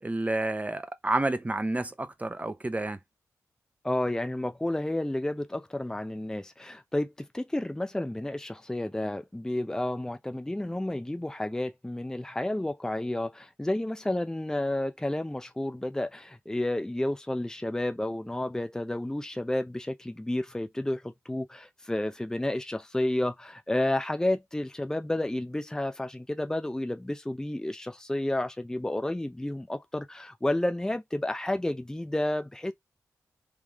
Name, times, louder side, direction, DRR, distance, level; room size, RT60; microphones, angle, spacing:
voice 1, 0.0-3.0, right 2 dB, 25° right, 0.8 m, -30 dB
voice 2, 3.8-32.7, left 1 dB, 10° left, 0.6 m, -31 dB
3.5 x 3.2 x 3.6 m
supercardioid pair, 45°, 6 cm